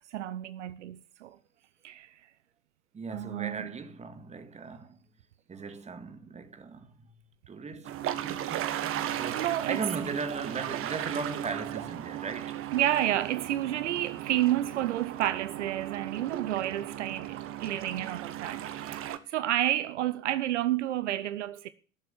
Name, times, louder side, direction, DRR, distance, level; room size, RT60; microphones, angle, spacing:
voice 1, 0.1-1.4 1.8-2.1 3.1-3.7 9.1-9.8 12.7-21.7, right 13 dB, 60° right, 0.9 m, -30 dB
voice 2, 2.9-5.0 5.5-7.1 7.5-12.6 17.2-17.3, right 4 dB, 15° right, 2.0 m, -38 dB
sound 1, 7.8-19.2, right 12 dB, 35° right, 1.5 m, -36 dB
18.0 x 7.7 x 8.4 m
figure-of-eight pair, 80°, 40 cm